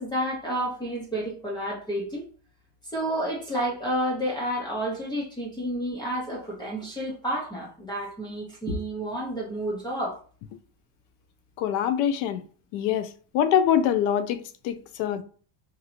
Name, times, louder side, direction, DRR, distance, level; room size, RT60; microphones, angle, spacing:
voice 1, 0.0-2.3 2.9-10.2, right 1 dB, 10° left, 0.5 m, -30 dB
voice 2, 11.6-12.4 12.7-13.1 13.3-15.2, left 9 dB, 75° left, 0.6 m, -24 dB
2.9 x 2.7 x 2.4 m
cardioid pair, 170°, 46 cm